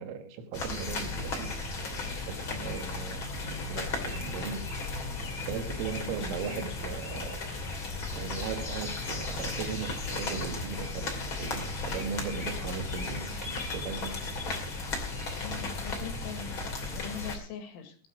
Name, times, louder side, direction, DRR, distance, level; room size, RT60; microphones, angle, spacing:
voice 1, 0.0-4.7 5.4-7.4 8.1-14.3, right 6 dB, 80° right, 4.1 m, -38 dB
sound 1, 0.5-17.4, left 3 dB, 35° left, 2.4 m, -35 dB
voice 2, 2.5-2.8 6.1-6.6 15.4-18.0, left 7 dB, 70° left, 4.4 m, -43 dB
sound 2, 3.1-16.6, left 2 dB, 50° left, 2.6 m, -49 dB
21.0 x 8.4 x 4.6 m
omnidirectional pair, 5.9 m